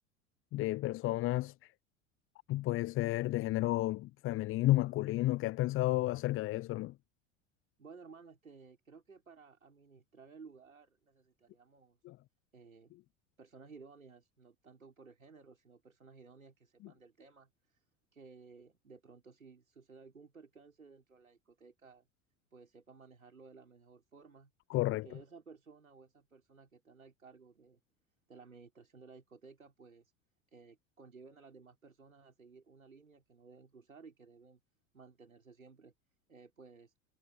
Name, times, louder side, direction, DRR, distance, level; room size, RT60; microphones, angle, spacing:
voice 1, 0.5-1.5 2.5-6.9 12.0-12.1 24.7-25.1, left 17 dB, 30° left, 0.7 m, -32 dB
voice 2, 7.8-12.0 12.5-12.9 13.4-17.8 18.1-22.1 22.5-24.5 24.9-27.8 28.3-30.1 30.5-34.6 34.9-35.9 36.3-36.9, right 4 dB, 85° right, 5.7 m, -57 dB
figure-of-eight pair, 80°, 39 cm